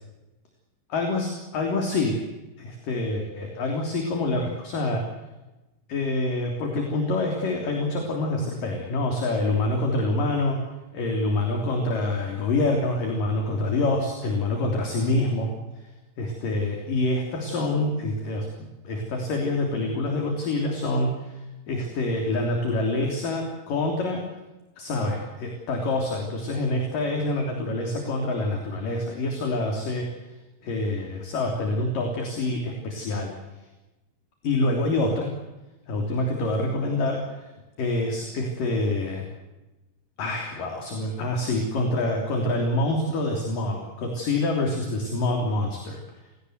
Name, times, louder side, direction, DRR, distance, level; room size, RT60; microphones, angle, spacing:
voice 1, 0.9-2.2 2.6-5.0 5.9-10.6 10.9-15.5 16.2-18.5 18.8-21.4 21.7-24.2 24.8-30.1 30.6-33.3 34.4-35.3 35.9-37.5 37.8-39.2 40.2-46.0, left 2 dB, 50° left, 2 dB, 4.7 m, -26 dB
29.0 x 18.5 x 8.0 m, 1.1 s
omnidirectional pair, 5.3 m